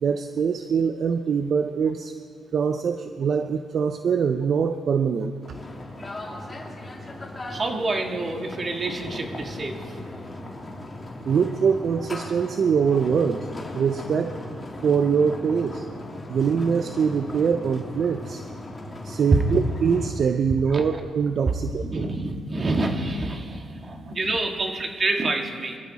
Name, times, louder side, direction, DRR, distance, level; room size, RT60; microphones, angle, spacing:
voice 1, 0.0-2.1 2.5-5.3 11.3-13.5 13.7-14.3 14.8-15.8 16.3-18.4 19.0-22.1, right 6 dB, 55° right, 8 dB, 0.6 m, -23 dB
sound 1, 5.4-20.1, left 1 dB, 20° left, 2.7 m, -38 dB
voice 2, 7.5-9.8 20.7-20.8 21.5-21.6 21.8-25.8, right 2 dB, 35° right, 3 dB, 2.0 m, -27 dB
24.5 x 13.5 x 4.2 m, 2.1 s
cardioid pair, 90°, 0 cm